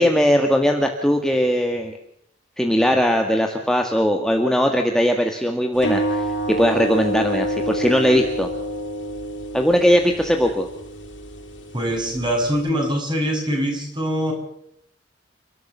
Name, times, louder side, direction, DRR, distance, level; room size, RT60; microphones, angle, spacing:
voice 1, 0.0-1.9 2.6-8.5 9.5-10.7, equal, 5° left, 3 dB, 1.7 m, -19 dB
sound 1, 5.8-12.7, right 1 dB, 85° left, 6.8 m, -28 dB
voice 2, 11.7-14.3, equal, 25° right, 2 dB, 6.8 m, -23 dB
29.5 x 13.0 x 6.8 m, 0.74 s
head